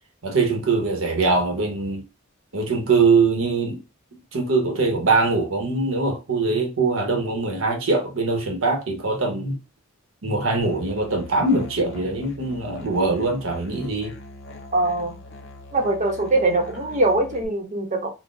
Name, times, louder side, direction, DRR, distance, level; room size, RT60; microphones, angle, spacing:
voice 1, 0.2-2.0 2.5-3.8 4.3-9.6 10.2-14.1, right 3 dB, 70° right, 0.8 m, -22 dB
Musical instrument, 10.6-17.5, left 1 dB, 60° left, 0.6 m, -42 dB
voice 2, 14.7-15.1 15.7-18.1, right 2 dB, 35° right, 0.7 m, -22 dB
3.8 x 2.0 x 2.4 m
head